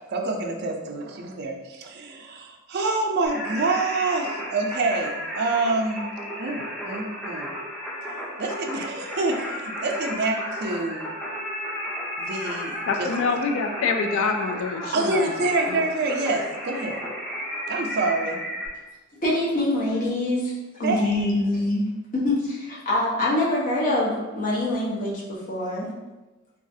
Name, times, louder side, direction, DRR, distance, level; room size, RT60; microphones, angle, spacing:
voice 1, 0.1-6.1 6.4-7.5 8.4-11.1 12.2-13.1 14.9-17.0 17.7-18.4 20.8-21.1, right 3 dB, 55° right, 2 dB, 0.4 m, -27 dB
Singing, 3.3-18.7, equal, ahead, 0.5 m, -33 dB
voice 2, 12.9-15.3 15.7-15.8, left 4 dB, 70° left, 5 dB, 0.3 m, -26 dB
voice 3, 19.2-20.5 20.8-21.9 22.1-25.9, left 1 dB, 40° left, -5 dB, 0.8 m, -24 dB
3.1 x 2.3 x 2.6 m, 1.1 s
head